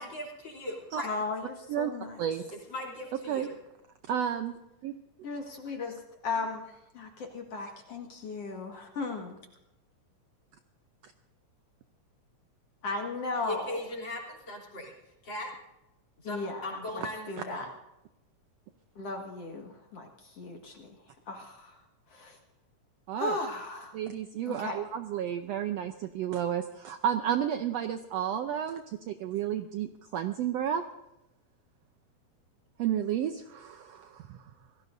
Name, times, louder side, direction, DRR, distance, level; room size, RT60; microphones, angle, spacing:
voice 1, 0.0-1.1 2.5-3.5 13.4-14.9 15.2-15.5 16.2-16.4 16.6-17.7, left 1 dB, 35° left, -1 dB, 3.7 m, -38 dB
voice 2, 1.0-2.2 5.2-9.4 12.8-13.8 16.2-17.7 19.0-21.0 21.3-21.8 22.1-22.4 23.2-24.0 24.5-24.8, left 3 dB, 50° left, 2 dB, 2.6 m, -36 dB
voice 3, 2.2-2.5 3.3-3.5 4.1-4.5 4.8-4.9 23.1-23.4 23.9-30.8 32.8-34.4, right 9 dB, 85° right, 7 dB, 1.4 m, -31 dB
27.0 x 17.5 x 2.7 m, 0.91 s
omnidirectional pair, 3.8 m